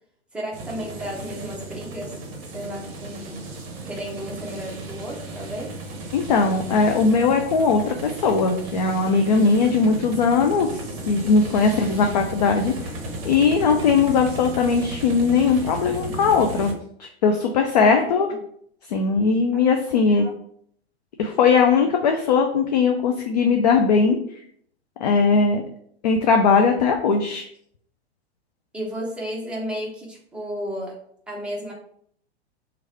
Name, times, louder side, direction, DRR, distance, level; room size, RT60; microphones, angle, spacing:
voice 1, 0.3-2.2 2.5-3.6 3.8-5.7 11.6-11.8 17.8-18.4 20.1-20.3 28.7-31.0 31.3-31.7, equal, 5° right, -4 dB, 0.6 m, -33 dB
sound 1, 0.5-16.7, right 2 dB, 35° right, 0.8 m, -35 dB
voice 2, 6.1-12.9 13.2-16.7 17.0-18.3 18.9-20.3 21.2-24.4 25.0-25.6 26.0-27.5, left 5 dB, 40° left, 4 dB, 0.4 m, -19 dB
3.0 x 2.5 x 4.3 m, 0.66 s
figure-of-eight pair, 105°, 33 cm